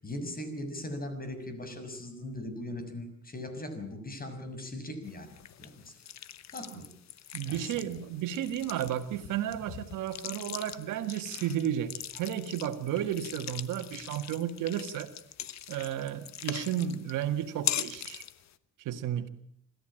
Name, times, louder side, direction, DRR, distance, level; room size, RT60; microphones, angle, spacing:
voice 1, 0.0-5.9 6.5-6.9 7.5-7.8, left 1 dB, 30° left, 8 dB, 6.6 m, -39 dB
sound 1, 5.0-18.5, left 10 dB, 65° left, 1.3 m, -41 dB
voice 2, 7.3-15.1 15.7-18.2 18.8-19.3, right 10 dB, 90° right, 9 dB, 1.8 m, -33 dB
26.5 x 14.5 x 8.9 m, 0.68 s
cardioid pair, 90°, 30 cm